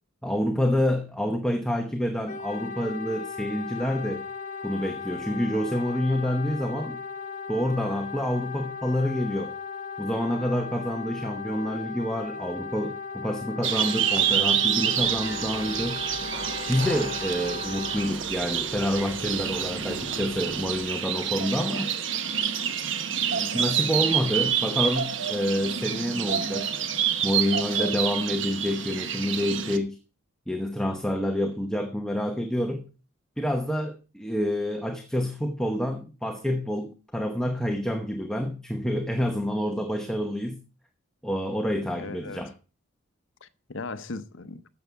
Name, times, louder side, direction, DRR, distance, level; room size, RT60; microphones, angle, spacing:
voice 1, 0.2-4.2 4.6-7.0 7.5-9.5 10.0-16.0 16.7-21.9 23.5-26.7 27.2-30.0 30.5-32.8 33.4-40.6 41.2-42.5, equal, 5° left, 0.9 m, -28 dB
Wind instrument woodwind instrument, 2.3-18.1, left 5 dB, 35° left, 0.9 m, -37 dB
sound 1, 13.6-29.8, right 8 dB, 65° right, 1.1 m, -28 dB
sound 2, 15.0-20.8, right 1 dB, 85° right, 7.1 m, -41 dB
voice 2, 42.0-42.4 43.4-44.6, left 3 dB, 70° left, 0.8 m, -38 dB
12.5 x 7.8 x 4.7 m
head